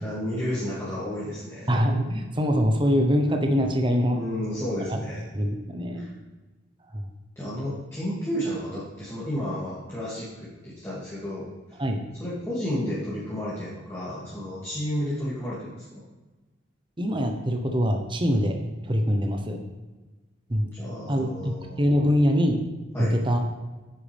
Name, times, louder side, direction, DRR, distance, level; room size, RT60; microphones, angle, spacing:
voice 1, 0.0-1.7 4.1-5.2 5.9-6.1 7.4-11.8 12.2-16.0 20.7-22.1 22.9-23.1, equal, 15° left, -9 dB, 2.6 m, -32 dB
voice 2, 1.7-4.2 4.9-5.0 5.3-6.1 6.9-7.1 11.8-12.0 17.0-19.6 20.5-20.7 21.1-22.6 23.0-23.4, equal, 25° right, 3 dB, 1.0 m, -24 dB
10.0 x 9.5 x 3.5 m, 1.2 s
head